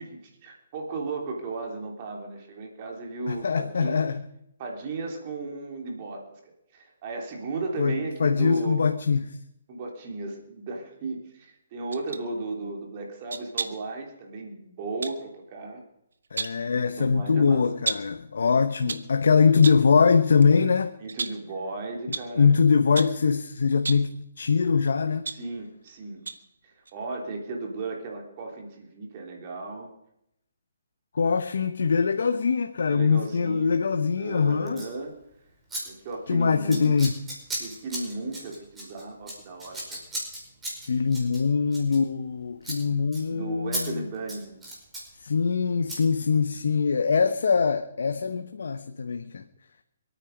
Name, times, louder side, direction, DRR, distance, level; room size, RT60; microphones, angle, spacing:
voice 1, 0.0-4.0 4.6-6.2 6.7-8.9 9.7-15.8 17.0-17.6 21.0-22.5 25.3-26.2 26.6-29.9 32.9-33.7 34.2-35.1 35.8-37.0 37.6-40.0 43.3-44.6, right 3 dB, 35° right, 3.1 m, -35 dB
voice 2, 3.3-4.2 7.8-9.4 16.3-20.9 22.4-25.3 31.1-34.8 36.3-37.2 40.8-44.1 45.2-49.4, left 5 dB, 75° left, 1.0 m, -23 dB
sound 1, 11.9-12.3 13.3-13.9 15.0-15.2 16.1-16.7 17.9-18.2 18.7-19.2 19.6-19.9 20.4-20.6 21.1-21.5 22.1-22.4 23.0-23.3 23.8-24.1 24.9-25.9 26.3-26.5 26.9-27.0, right 4 dB, 80° right, 1.3 m, -34 dB
Scissors, 34.7-34.9 35.7-35.8 36.1-36.3 36.7-42.3 42.6-42.8 43.1-43.2 43.7-43.8 44.1-45.1 45.9-46.0, right 1 dB, 10° right, 5.0 m, -36 dB
26.0 x 9.3 x 5.2 m
hypercardioid pair, 155°, 0 cm